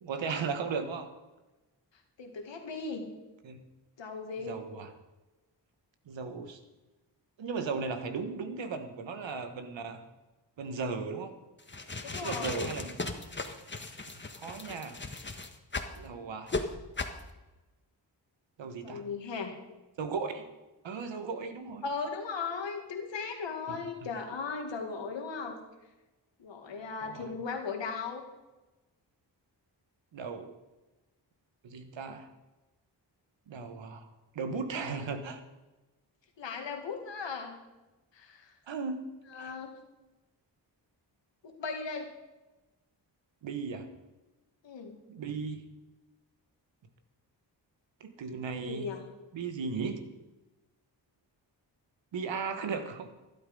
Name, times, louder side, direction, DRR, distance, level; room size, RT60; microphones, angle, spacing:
voice 1, 0.0-1.1 3.4-3.6 4.4-4.9 6.1-6.6 7.4-10.0 10.6-11.3 12.2-13.0 14.1-15.0 15.9-16.6 18.6-19.0 20.0-20.5 20.8-21.8 23.7-23.8 27.0-27.3 30.1-30.5 31.6-32.3 33.5-34.1 34.3-35.4 38.7-39.0 39.3-39.5 43.4-43.9 45.1-45.6 48.0-48.9 49.3-50.0 52.1-53.1, right 5 dB, 90° right, 8 dB, 1.4 m, -36 dB
voice 2, 2.2-3.1 4.0-4.6 12.0-12.7 18.8-19.6 21.8-25.6 26.4-28.2 36.4-37.6 38.1-38.5 39.3-39.7 41.4-42.1 44.6-45.0 48.5-49.1, left 4 dB, 85° left, 4 dB, 2.1 m, -37 dB
sound 1, 11.6-16.0 16.5-16.6 17.0-17.2, left 3 dB, 25° left, 1.5 m, -37 dB
12.0 x 12.0 x 5.4 m, 1.1 s
cardioid pair, 55°, 44 cm